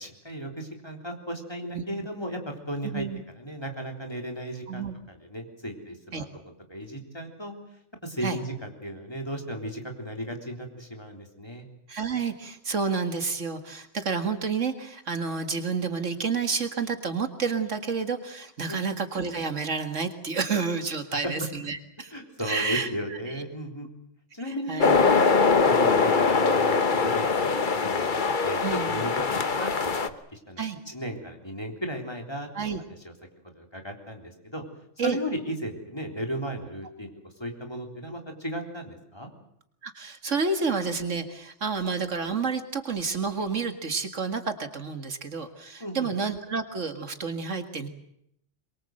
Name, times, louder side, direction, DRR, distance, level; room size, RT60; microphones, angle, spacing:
voice 1, 0.0-3.1 3.3-6.3 6.7-7.5 8.0-11.7 18.7-18.8 21.1-21.3 22.1-24.0 24.3-32.7 33.0-33.1 33.5-34.6 35.0-37.1 37.4-39.3 45.8-46.1, equal, 20° left, 3 dB, 3.7 m, -35 dB
voice 2, 11.9-21.4 21.7-22.1 22.4-23.4 24.5-25.0 28.6-29.0 30.6-30.8 32.5-32.8 35.0-35.2 39.8-47.9, right 5 dB, 70° right, 7 dB, 2.2 m, -30 dB
sound 1, 24.8-30.1, left 4 dB, 40° left, 1.2 m, -22 dB
24.0 x 22.5 x 7.8 m, 0.74 s
omnidirectional pair, 1.3 m